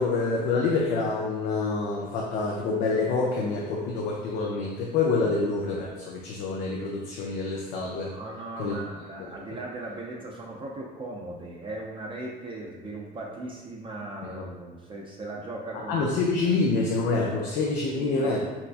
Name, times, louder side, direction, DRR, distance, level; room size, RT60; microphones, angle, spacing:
voice 1, 0.0-8.1 8.6-8.8 14.2-14.4 15.9-18.4, left 3 dB, 85° left, -2 dB, 0.4 m, -27 dB
voice 2, 8.1-16.2 16.4-16.5 17.9-18.4, right 2 dB, 30° right, -2 dB, 0.4 m, -38 dB
4.2 x 2.2 x 2.4 m, 1.2 s
cardioid pair, 110°, 17 cm